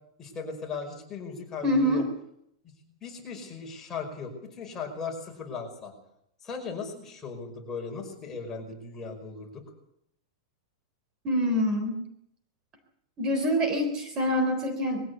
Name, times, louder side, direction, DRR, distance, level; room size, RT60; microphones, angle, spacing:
voice 1, 0.2-2.0 3.0-5.9 6.4-9.6, left 4 dB, 15° left, 1 dB, 5.4 m, -37 dB
voice 2, 1.6-2.1 11.2-12.0 13.2-15.0, equal, 25° right, 6 dB, 3.6 m, -25 dB
22.0 x 16.0 x 8.3 m, 0.75 s
supercardioid pair, 160°, 3 cm